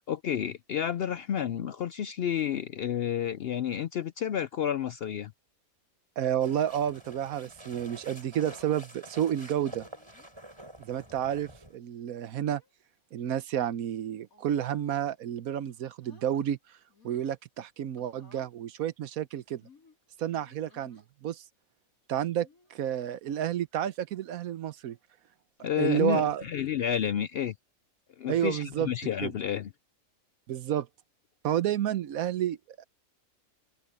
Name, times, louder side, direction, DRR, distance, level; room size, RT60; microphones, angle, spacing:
voice 1, 0.1-5.3 25.6-27.5 28.2-29.7, left 9 dB, 65° left, 0.6 m, -30 dB
voice 2, 6.2-9.9 10.8-12.6 13.1-16.6 17.0-19.6 20.2-21.4 22.1-25.0 25.6-26.4 28.3-28.9 29.2-29.3 30.5-30.9 31.4-32.8, right 10 dB, 80° right, 1.2 m, -30 dB
sound 1, 6.4-11.8, right 1 dB, 20° right, 7.9 m, -49 dB
sound 2, 8.2-8.8 9.7-10.3 10.9-11.1 12.1-12.7 13.2-13.5 14.2-15.2 15.5-16.5 16.9-17.4 18.0-18.5 19.5-21.1 22.3-22.7 23.3-23.7 23.9-24.0 25.6-26.0 27.1-27.4, left 4 dB, 85° left, 5.1 m, -60 dB
omnidirectional pair, 1.5 m